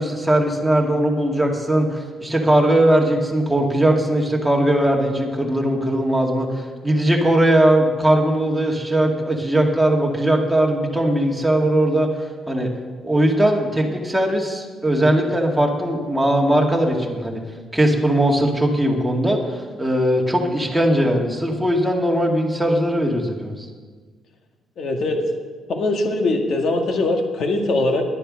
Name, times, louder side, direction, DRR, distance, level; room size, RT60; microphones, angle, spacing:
voice 1, 0.0-12.1 12.5-12.7 13.0-17.4 17.7-23.7, right 1 dB, 5° right, -1 dB, 2.2 m, -19 dB
voice 2, 24.8-25.2 25.7-28.0, left 2 dB, 65° left, 3 dB, 1.9 m, -21 dB
11.0 x 9.9 x 6.4 m, 1.5 s
cardioid pair, 90°, 0 cm